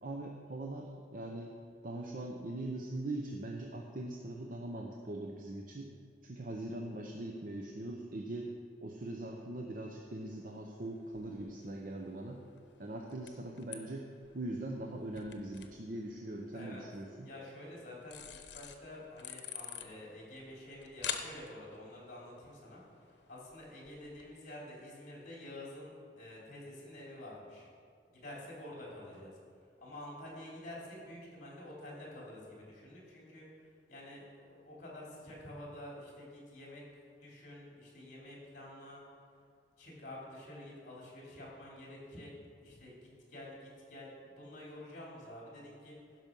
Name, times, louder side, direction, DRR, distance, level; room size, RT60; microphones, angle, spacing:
voice 1, 0.0-1.5 1.8-5.9 6.2-8.5 8.8-12.4 12.8-14.1 14.3-17.3, right 1 dB, 50° right, 1 dB, 0.8 m, -41 dB
sound 1, 10.2-24.3, left 8 dB, 90° left, 0.8 m, -49 dB
voice 2, 16.5-16.8 17.2-27.7 28.1-29.3 29.8-33.5 33.9-36.8 37.2-39.0 39.8-42.3 42.6-46.0, left 1 dB, 45° left, -4 dB, 3.4 m, -49 dB
15.5 x 6.1 x 5.4 m, 2.2 s
head